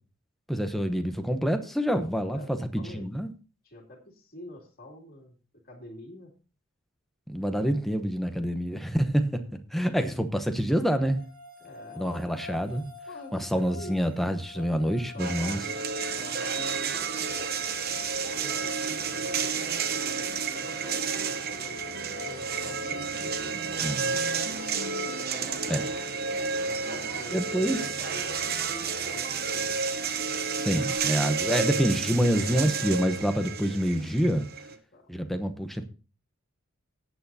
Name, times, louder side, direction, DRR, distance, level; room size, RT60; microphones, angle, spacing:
voice 1, 0.5-3.3 7.3-9.4 9.7-11.2 12.0-12.9 13.3-15.6 23.8-24.2 25.7-25.8 27.3-27.8 30.6-34.4 35.1-35.9, equal, ahead, 0.9 m, -27 dB
voice 2, 2.3-3.1 3.6-5.4 5.6-6.3 11.6-12.2 13.1-14.0 14.4-14.7 15.1-15.8 16.2-17.5 18.2-23.4 25.1-26.0 26.5-29.9 34.7-35.1, left 1 dB, 45° left, 2.8 m, -47 dB
sound 1, 11.2-31.0, left 4 dB, 65° right, 4.2 m, -47 dB
sound 2, 15.2-34.8, right 5 dB, 45° right, 0.8 m, -31 dB
18.0 x 8.3 x 2.7 m
head